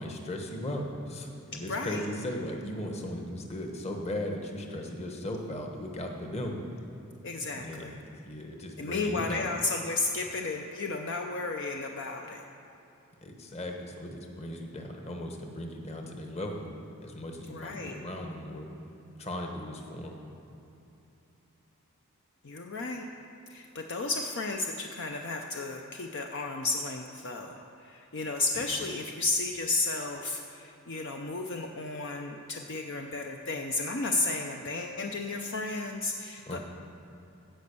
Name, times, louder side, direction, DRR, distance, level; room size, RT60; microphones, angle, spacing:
voice 1, 0.0-6.6 7.6-9.5 13.2-16.7 17.0-18.7 19.2-20.1 28.5-28.9 36.5-36.6, left 1 dB, 30° left, 2 dB, 1.1 m, -37 dB
voice 2, 1.7-2.0 7.2-8.0 8.8-12.4 17.5-18.0 22.4-23.1 23.5-36.6, left 3 dB, 55° left, 3 dB, 0.6 m, -33 dB
15.5 x 5.2 x 6.9 m, 2.9 s
head